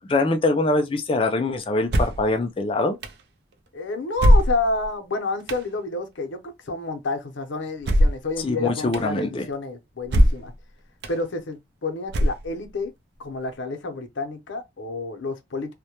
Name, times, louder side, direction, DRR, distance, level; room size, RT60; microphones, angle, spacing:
voice 1, 0.1-3.0 8.4-9.4, left 2 dB, 25° left, 0.3 m, -23 dB
sound 1, 1.9-2.3 3.0-3.1 4.2-4.9 5.5-5.6 7.8-8.3 8.9-9.0 10.1-10.5 11.0-11.1 12.1-12.7, equal, 55° right, 0.4 m, -19 dB
voice 2, 3.7-10.5 11.1-12.9 13.2-15.7, left 3 dB, 75° left, 0.6 m, -29 dB
2.1 x 2.1 x 2.8 m
head